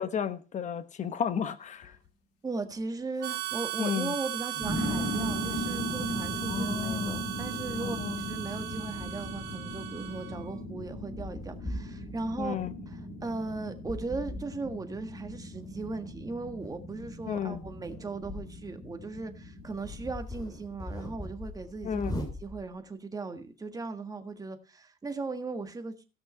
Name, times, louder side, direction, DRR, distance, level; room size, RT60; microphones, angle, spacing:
voice 1, 0.0-1.9 3.8-4.1 6.4-7.2 7.8-8.3 12.4-12.7 17.3-17.6 21.8-22.1, left 7 dB, 45° left, 1.2 m, -33 dB
sound 1, 1.8-2.1 2.7-2.8 4.5-20.1, left 1 dB, 85° left, 2.8 m, -38 dB
voice 2, 2.4-12.5 12.9-25.9, right 3 dB, 20° right, 1.7 m, -38 dB
Harmonica, 3.2-10.5, right 16 dB, 75° right, 0.7 m, -37 dB
sound 2, 4.6-5.2 6.4-8.4 9.0-9.6 10.3-10.4 10.8-12.8 13.9-14.5 15.2-18.7 19.0-19.1 19.6-22.8, left 1 dB, 25° left, 2.9 m, -42 dB
16.5 x 6.2 x 4.4 m
cardioid pair, 110°, 17 cm